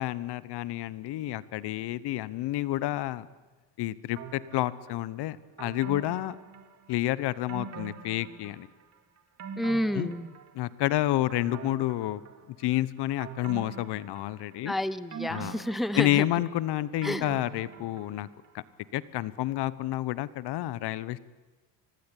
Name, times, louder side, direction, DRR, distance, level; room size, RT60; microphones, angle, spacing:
voice 1, 0.0-3.3 3.8-6.3 6.9-8.7 9.9-10.1 10.5-12.2 12.5-14.7 15.3-15.5 15.9-18.3 18.5-18.6 18.9-21.2, left 15 dB, 65° left, 18 dB, 1.1 m, -29 dB
sound 1, 4.2-5.0 5.6-7.0 7.5-8.8 9.2-10.8 11.3-12.6 13.2-14.6 15.1-18.4 18.7-18.8, right 6 dB, 35° right, 2.5 m, -43 dB
voice 2, 9.6-10.3 14.6-16.2 17.0-17.3, left 1 dB, ahead, 14 dB, 0.8 m, -30 dB
25.0 x 19.0 x 10.0 m, 1.3 s
cardioid pair, 135°, 44 cm